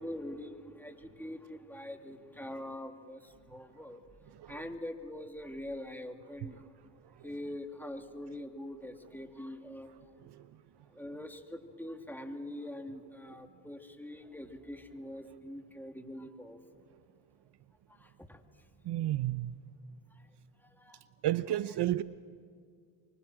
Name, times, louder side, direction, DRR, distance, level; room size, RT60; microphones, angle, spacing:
voice 1, 0.0-4.0 4.5-6.7 7.2-9.9 10.9-16.8 17.9-18.4 20.1-20.3 20.6-21.0, left 1 dB, 5° left, 4 dB, 2.8 m, -44 dB
voice 2, 18.8-19.5 21.2-22.0, right 13 dB, 60° right, 15 dB, 0.8 m, -32 dB
25.0 x 24.5 x 7.5 m, 2.1 s
supercardioid pair, 60°, 46 cm